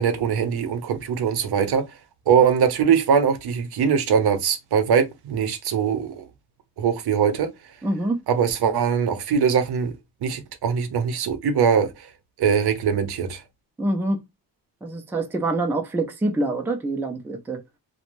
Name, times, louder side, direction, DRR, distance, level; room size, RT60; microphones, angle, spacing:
voice 1, 0.0-1.9 2.3-6.3 6.8-7.5 8.3-9.9 10.2-11.9 12.4-13.4, right 7 dB, 70° right, 0.6 m, -21 dB
voice 2, 7.8-8.2 13.8-14.2 14.8-17.6, right 2 dB, 5° right, 0.3 m, -25 dB
2.5 x 2.1 x 3.0 m
wide cardioid pair, 130°, 40 cm